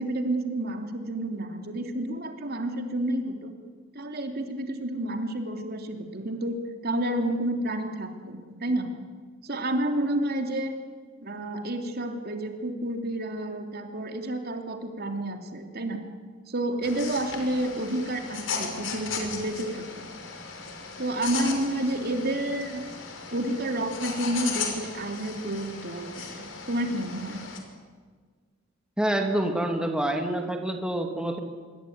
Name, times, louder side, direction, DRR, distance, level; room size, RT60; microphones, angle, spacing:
voice 1, 0.0-3.5 3.9-6.6 6.8-8.9 9.4-10.7 11.2-16.0 16.5-20.1 21.0-22.8 23.3-27.4, right 1 dB, 55° right, 5 dB, 3.1 m, -30 dB
sound 1, 16.8-27.6, left 5 dB, 75° left, 5.5 m, -36 dB
voice 2, 29.0-31.4, right 1 dB, 5° right, 3 dB, 2.6 m, -27 dB
27.0 x 23.5 x 9.5 m, 1.5 s
head